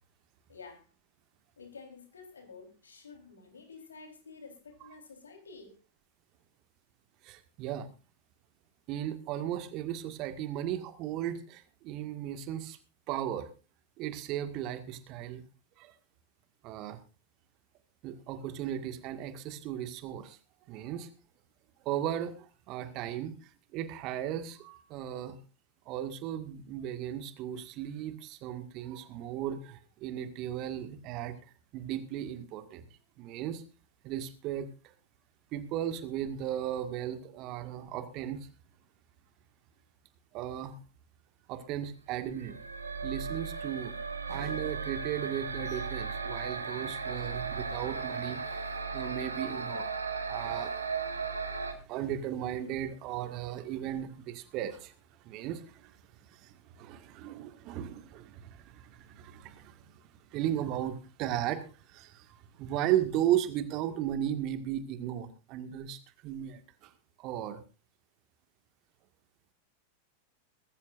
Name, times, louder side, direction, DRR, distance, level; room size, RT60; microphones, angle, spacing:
voice 1, 0.5-0.9 1.6-5.8, left 4 dB, 70° left, 5 dB, 4.0 m, -50 dB
voice 2, 7.2-7.9 8.9-12.8 13.1-13.5 14.0-15.4 15.8-15.9 16.6-17.0 18.0-20.4 20.7-21.1 21.8-23.3 23.7-25.4 25.9-31.3 31.7-32.9 33.2-33.6 34.0-34.7 35.5-38.5 40.3-40.8 41.5-42.6 43.0-43.9 44.3-49.9 50.3-50.8 51.8-54.9 55.2-55.9 56.3-59.8 60.3-66.9 67.2-67.6, right 11 dB, 40° right, 9 dB, 1.9 m, -36 dB
sound 1, 42.3-51.7, right 4 dB, 80° right, 2.0 m, -36 dB
22.0 x 14.0 x 2.6 m, 0.32 s
figure-of-eight pair, 90°, 0 cm